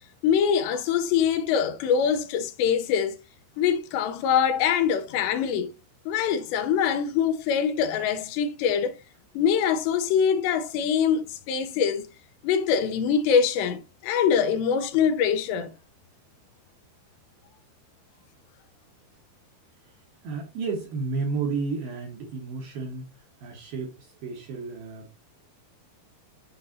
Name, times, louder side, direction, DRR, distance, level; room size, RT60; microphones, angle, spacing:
voice 1, 0.2-3.2 3.6-5.7 6.1-8.9 9.4-12.0 12.4-15.7, left 7 dB, 80° left, 2.7 m, -24 dB
voice 2, 20.2-25.2, right 4 dB, 70° right, 2.5 m, -32 dB
11.0 x 4.0 x 2.7 m
omnidirectional pair, 5.3 m